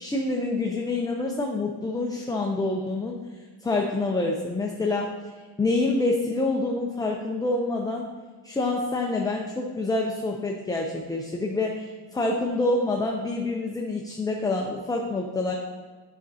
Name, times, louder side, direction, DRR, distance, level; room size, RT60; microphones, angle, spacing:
voice 1, 0.0-3.2 3.6-5.2 5.6-8.1 8.4-15.5, left 2 dB, 10° left, 0 dB, 0.4 m, -27 dB
9.1 x 6.1 x 2.7 m, 1.4 s
cardioid pair, 130°, 44 cm